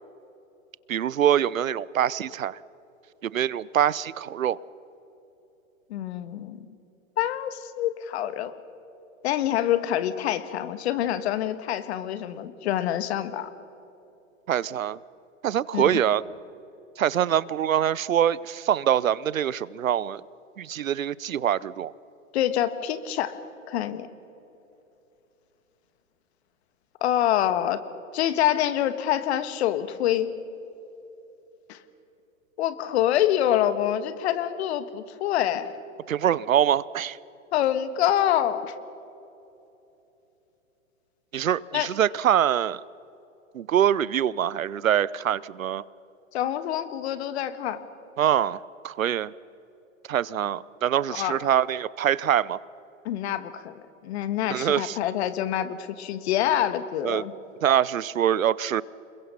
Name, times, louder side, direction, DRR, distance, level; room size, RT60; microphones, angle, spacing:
voice 1, 0.9-2.6 3.2-4.6 14.5-15.0 15.4-16.2 17.0-20.2 20.6-21.9 36.1-37.2 41.3-42.8 43.5-45.8 48.2-49.3 50.1-52.6 54.5-55.0 57.0-57.2 57.6-58.8, right 10 dB, 80° right, 21 dB, 0.7 m, -24 dB
voice 2, 5.9-6.6 7.2-8.5 9.2-13.5 15.7-15.8 22.3-23.4 23.7-24.1 27.0-27.8 28.1-30.3 31.7-31.8 32.6-35.7 37.5-38.7 41.7-41.9 46.3-47.8 51.1-51.4 53.0-53.7 54.0-57.3, left 11 dB, 55° left, 12 dB, 1.6 m, -26 dB
28.5 x 21.5 x 5.6 m, 3.0 s
hypercardioid pair, 115°, 40 cm